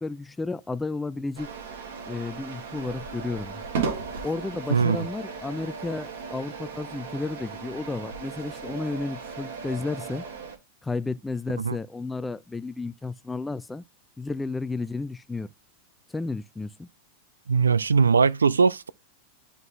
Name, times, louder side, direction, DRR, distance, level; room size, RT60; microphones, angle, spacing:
voice 1, 0.0-1.5 2.1-3.6 4.2-10.2 10.8-13.8 14.2-15.5 16.1-16.9, left 3 dB, 10° left, 0.3 m, -32 dB
sound 1, 1.4-10.6, right 5 dB, 60° right, 1.5 m, -36 dB
voice 2, 4.7-5.1 11.6-11.8 17.5-18.9, right 5 dB, 75° right, 0.3 m, -21 dB
10.5 x 3.9 x 2.6 m
figure-of-eight pair, 90°, 0 cm